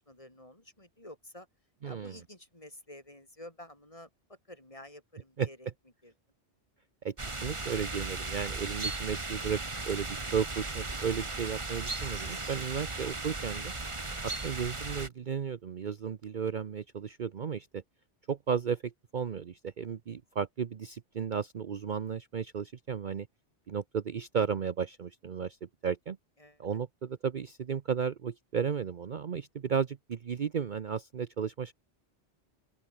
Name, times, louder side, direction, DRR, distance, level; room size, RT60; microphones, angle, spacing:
voice 1, 0.0-1.5 1.8-5.7 6.0-6.1 14.0-14.3 26.4-26.6, left 1 dB, 30° left, 4.7 m, -51 dB
voice 2, 1.8-2.2 5.4-5.5 7.0-9.6 9.9-13.7 14.2-17.8 18.3-23.3 23.7-26.2 26.6-31.7, right 7 dB, 50° right, 0.8 m, -34 dB
sound 1, 7.2-15.1, right 3 dB, 25° right, 1.5 m, -36 dB
open air
omnidirectional pair, 1.2 m